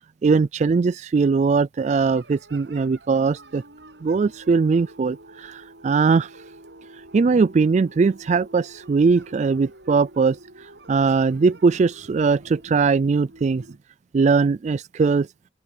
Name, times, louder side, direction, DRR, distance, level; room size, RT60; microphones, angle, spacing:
voice 1, 0.2-3.6 4.0-6.3 7.1-10.4 10.9-13.6 14.1-15.3, right 4 dB, 40° right, 0.3 m, -20 dB
sound 1, 1.9-13.8, right 1 dB, 75° right, 7.8 m, -47 dB
open air
head